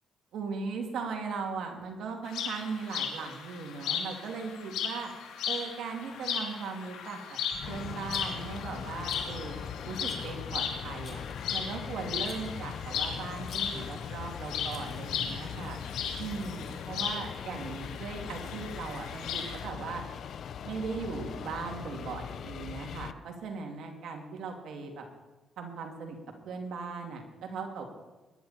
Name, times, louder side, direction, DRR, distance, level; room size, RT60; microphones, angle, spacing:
voice 1, 0.3-5.1 5.5-7.4 7.7-11.2 11.5-15.8 16.2-20.0 20.6-25.1 25.6-26.2 26.4-27.9, right 5 dB, 75° right, 3 dB, 2.8 m, -38 dB
sound 1, 2.3-19.6, left 7 dB, 85° left, 2.6 m, -37 dB
sound 2, 7.5-23.1, left 8 dB, 60° left, 0.6 m, -40 dB
Rattle, 8.1-8.6 9.1-9.5 10.0-10.4 11.0-11.6 12.3-12.6 13.4-13.9 14.7-15.2, left 4 dB, 40° left, 3.1 m, -51 dB
21.0 x 11.0 x 4.5 m, 1.2 s
cardioid pair, 90°, 0 cm